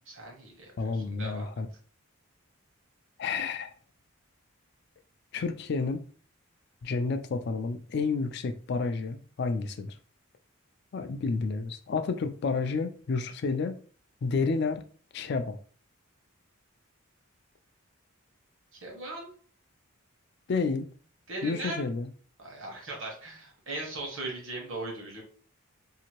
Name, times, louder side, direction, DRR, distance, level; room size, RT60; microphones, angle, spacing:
voice 1, 0.1-1.5 18.8-19.3 21.3-21.8 22.4-25.2, right 2 dB, 60° right, 1.0 m, -39 dB
voice 2, 0.8-1.7 3.2-3.7 5.3-6.0 6.8-9.9 10.9-13.8 14.2-14.8 15.1-15.6 20.5-20.9 21.4-22.1, left 4 dB, 50° left, 0.3 m, -30 dB
2.8 x 2.6 x 2.9 m
head